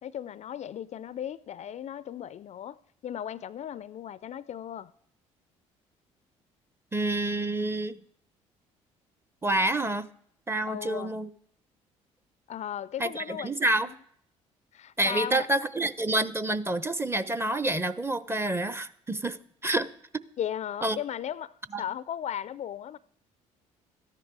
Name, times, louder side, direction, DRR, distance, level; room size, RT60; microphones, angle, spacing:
voice 1, 0.0-2.8 3.0-4.9 10.6-11.2 12.5-13.5 13.9-14.0 14.7-15.5 20.4-23.0, left 10 dB, 45° left, 0.5 m, -36 dB
voice 2, 6.9-8.0 9.4-10.1 10.5-11.3 13.0-13.9 15.0-19.9 20.8-21.0 21.7-21.8, right 2 dB, 15° right, 0.8 m, -28 dB
13.5 x 10.5 x 4.7 m
figure-of-eight pair, 50°, 16 cm